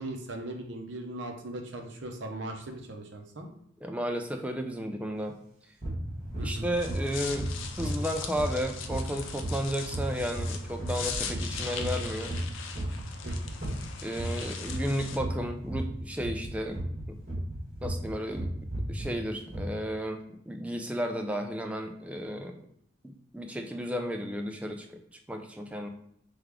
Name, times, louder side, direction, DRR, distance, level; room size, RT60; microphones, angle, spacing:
voice 1, 0.0-3.5 6.4-6.7 13.2-13.4, right 1 dB, 60° right, 3 dB, 0.6 m, -39 dB
voice 2, 3.8-5.4 6.4-12.3 14.0-16.8 17.8-18.5 18.9-22.6 23.0-24.9 25.3-25.9, equal, 5° right, 4 dB, 0.3 m, -33 dB
sound 1, 5.8-18.1 18.3-19.1 19.5-19.6, right 1 dB, 35° right, 1.6 m, -36 dB
sound 2, 6.6-15.2, left 6 dB, 65° left, 0.5 m, -40 dB
3.5 x 3.5 x 3.5 m, 0.71 s
head